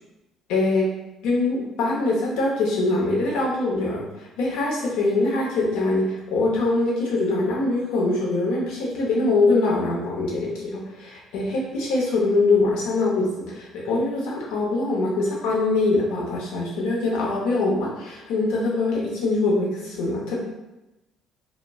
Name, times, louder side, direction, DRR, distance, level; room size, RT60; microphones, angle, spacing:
voice 1, 0.5-0.8 1.2-20.4, left 2 dB, 75° left, -4 dB, 0.8 m, -23 dB
2.2 x 2.1 x 3.4 m, 0.99 s
hypercardioid pair, 60°, 0 cm